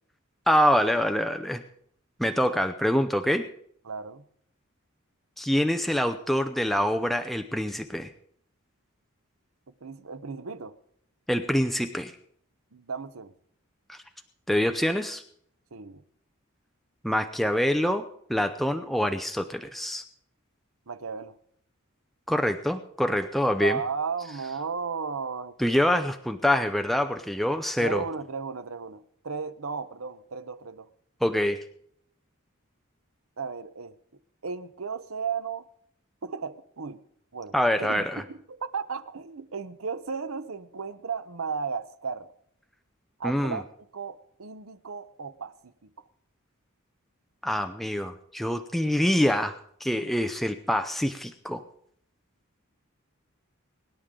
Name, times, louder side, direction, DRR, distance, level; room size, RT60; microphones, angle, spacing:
voice 1, 0.5-1.6 2.2-3.5 5.4-8.1 11.3-12.1 13.9-14.0 14.5-15.2 17.0-18.0 18.3-20.0 22.3-23.8 25.6-28.0 31.2-31.6 37.5-38.2 43.2-43.6 47.4-51.6, equal, ahead, 0.6 m, -25 dB
voice 2, 3.8-4.2 9.8-10.8 12.7-13.3 15.7-16.0 20.9-21.4 23.6-25.5 27.8-30.9 33.4-33.9 34.4-35.6 36.2-37.0 37.3-37.5 37.8-42.3 43.2-43.6 43.9-45.5 45.8-45.9, right 5 dB, 80° right, 0.9 m, -35 dB
24.0 x 10.5 x 3.8 m
head